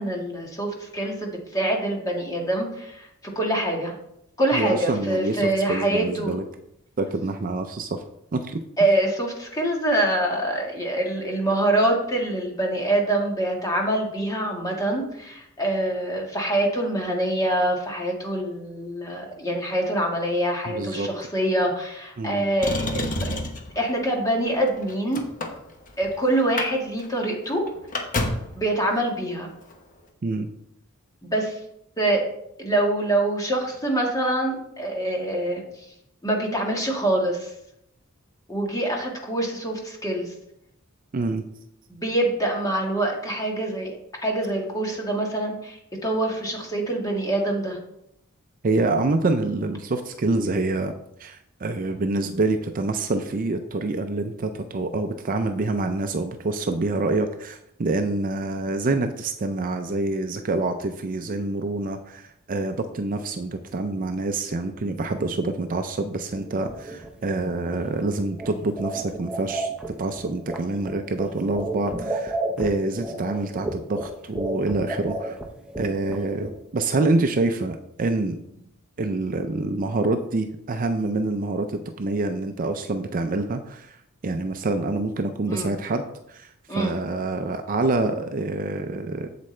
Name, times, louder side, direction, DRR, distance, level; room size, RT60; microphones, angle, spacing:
voice 1, 0.0-3.1 3.3-3.9 4.4-6.4 8.8-23.4 23.7-25.2 26.0-27.6 28.5-29.5 31.2-31.5 32.0-32.3 32.6-35.6 36.2-37.5 38.5-40.3 41.9-44.0 44.2-47.8 85.5-85.7 86.7-86.9, right 1 dB, 15° left, 0 dB, 1.6 m, -25 dB
voice 2, 4.5-6.4 7.0-8.0 8.3-8.6 20.7-21.1 22.2-22.4 30.2-30.5 41.1-41.4 48.6-50.9 51.2-69.7 70.0-75.4 75.8-78.4 79.0-84.0 84.2-89.3, right 2 dB, 40° right, 7 dB, 0.5 m, -26 dB
Motor vehicle (road), 22.6-23.7 24.5-26.1 26.4-26.7 27.0-27.1 27.4-28.6 29.6-29.7, left 2 dB, 35° left, 1.0 m, -28 dB
sound 1, 66.3-76.8, right 2 dB, 5° right, 0.8 m, -33 dB
8.0 x 7.4 x 3.2 m, 0.77 s
head